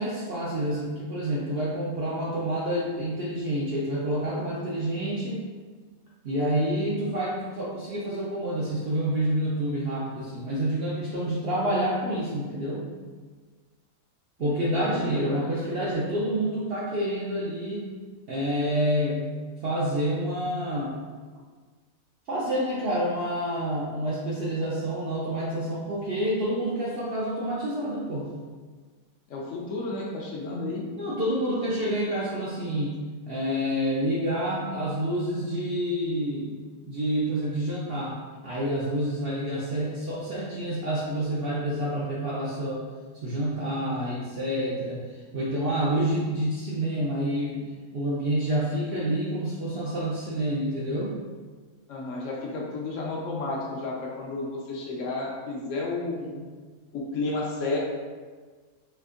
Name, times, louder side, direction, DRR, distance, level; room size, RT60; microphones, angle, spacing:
voice 1, 0.0-5.4 6.2-12.8 14.4-17.9 18.3-19.2 19.6-21.0 22.3-28.3 30.9-32.9 33.3-36.6 36.8-42.8 43.2-47.6 47.9-51.1 56.4-56.5, right 1 dB, 65° right, -7 dB, 0.6 m, -28 dB
voice 2, 14.4-15.5 29.3-30.8 51.9-56.3 56.9-57.8, left 3 dB, 70° left, -2 dB, 0.8 m, -32 dB
4.3 x 2.5 x 2.4 m, 1.5 s
omnidirectional pair, 1.5 m